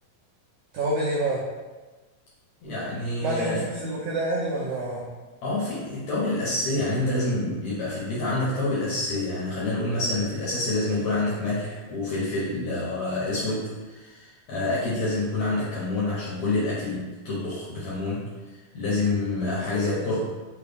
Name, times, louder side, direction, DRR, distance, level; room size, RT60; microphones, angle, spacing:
voice 1, 0.7-1.4 3.2-5.0, right 1 dB, 85° right, -5 dB, 1.7 m, -27 dB
voice 2, 2.6-3.7 5.4-18.2 18.7-20.2, left 2 dB, 70° left, -8 dB, 1.8 m, -27 dB
5.5 x 2.3 x 3.4 m, 1.3 s
omnidirectional pair, 4.1 m